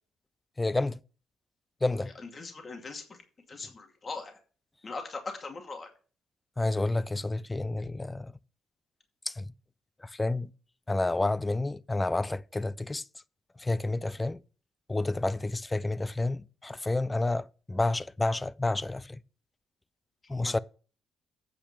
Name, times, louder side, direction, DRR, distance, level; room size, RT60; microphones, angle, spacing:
voice 1, 0.6-1.0 1.8-2.1 6.6-8.3 9.3-9.4 10.1-10.5 10.9-13.0 13.6-14.4 14.9-19.2 20.3-20.6, left 2 dB, 15° left, 0.5 m, -29 dB
voice 2, 2.2-3.2 3.5-4.4 4.8-5.9 20.2-20.6, left 3 dB, 40° left, 2.3 m, -40 dB
8.5 x 5.7 x 7.2 m
cardioid pair, 85°, 0 cm